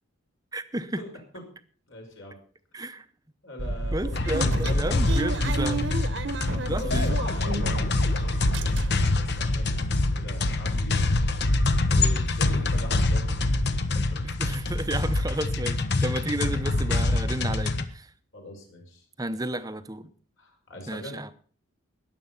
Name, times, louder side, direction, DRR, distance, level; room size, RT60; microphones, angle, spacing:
voice 1, 0.5-1.0 2.7-3.1 3.9-5.8 6.7-7.2 14.2-18.1 19.2-20.1 20.9-21.3, right 1 dB, 15° right, 12 dB, 0.8 m, -32 dB
voice 2, 1.9-2.4 3.4-5.6 6.7-11.2 11.9-13.6 14.1-14.2 18.3-19.0 19.5-19.6 20.4-21.2, left 1 dB, 70° left, 1 dB, 5.6 m, -42 dB
sound 1, 3.6-8.1 8.3-9.2 9.6-9.7 9.9-10.1, right 2 dB, 60° right, 1.1 m, -32 dB
sound 2, 4.1-17.8, left 2 dB, 50° left, 1.0 m, -25 dB
20.0 x 7.7 x 5.6 m, 0.44 s
head